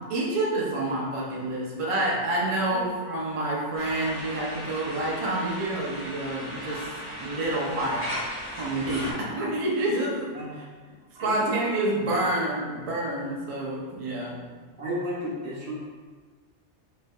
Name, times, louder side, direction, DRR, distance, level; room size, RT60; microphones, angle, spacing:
voice 1, 0.0-6.9 7.2-8.1 8.6-10.6 11.2-14.4, right 1 dB, 40° right, -4 dB, 0.5 m, -28 dB
sound 1, 3.8-9.1, equal, 50° left, 1.4 m, -37 dB
voice 2, 11.1-11.5 14.8-15.7, equal, 65° right, -8 dB, 1.3 m, -33 dB
3.9 x 3.3 x 2.2 m, 1.5 s
omnidirectional pair, 1.2 m